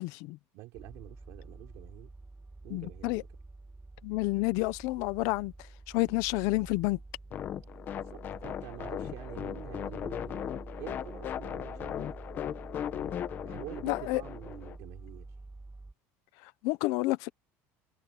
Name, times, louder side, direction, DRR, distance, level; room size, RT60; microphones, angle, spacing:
voice 1, 0.0-0.4 2.7-3.2 4.0-5.5 5.9-7.0 13.8-14.2 16.6-17.3, left 22 dB, 60° left, 0.9 m, -29 dB
voice 2, 0.5-2.1 2.6-3.3 8.0-10.5 10.8-12.2 13.5-15.3, right 19 dB, 55° right, 3.6 m, -47 dB
sound 1, 0.7-15.9, right 2 dB, 10° right, 6.6 m, -48 dB
sound 2, 7.3-14.8, left 10 dB, 30° left, 1.1 m, -38 dB
cardioid pair, 170°, 6 cm